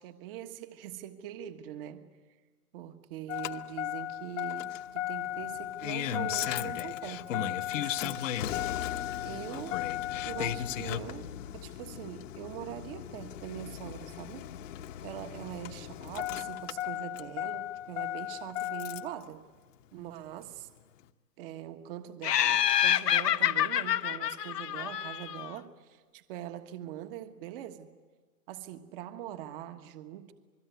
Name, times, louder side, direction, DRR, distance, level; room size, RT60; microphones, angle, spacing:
voice 1, 0.0-2.0 2.7-8.3 9.2-9.9 10.2-14.5 15.0-19.4 19.9-20.7 21.4-27.9 28.5-30.3, right 11 dB, 35° right, 8 dB, 1.5 m, -43 dB
Engine starting, 3.3-19.2 20.5-20.6, left 12 dB, 55° left, 1.2 m, -35 dB
Laughter, 22.2-25.5, left 11 dB, 90° left, 1.2 m, -27 dB
27.5 x 21.0 x 9.3 m, 1.4 s
hypercardioid pair, 155°, 47 cm